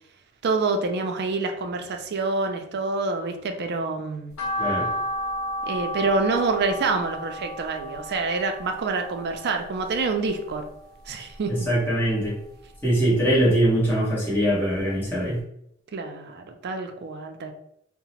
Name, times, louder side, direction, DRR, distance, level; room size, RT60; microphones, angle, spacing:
voice 1, 0.4-4.3 5.6-10.6 11.1-11.5 15.9-17.5, right 3 dB, 50° right, 5 dB, 0.4 m, -27 dB
sound 1, 4.4-10.7 11.0-12.2 12.5-14.0 14.3-14.4 14.9-15.0 15.2-15.3, equal, 75° left, 0.8 m, -33 dB
voice 2, 4.6-4.9 11.5-12.4 12.8-15.4, right 1 dB, 10° left, -8 dB, 1.1 m, -22 dB
2.8 x 2.1 x 2.9 m, 0.74 s
head